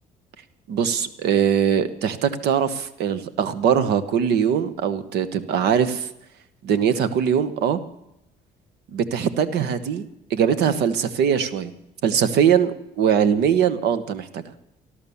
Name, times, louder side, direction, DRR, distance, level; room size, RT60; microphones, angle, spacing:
voice 1, 0.7-6.1 6.6-7.8 8.9-11.7 12.0-14.4, right 8 dB, 75° right, 12 dB, 1.1 m, -21 dB
14.5 x 11.5 x 7.0 m, 0.85 s
cardioid pair, 110°, 17 cm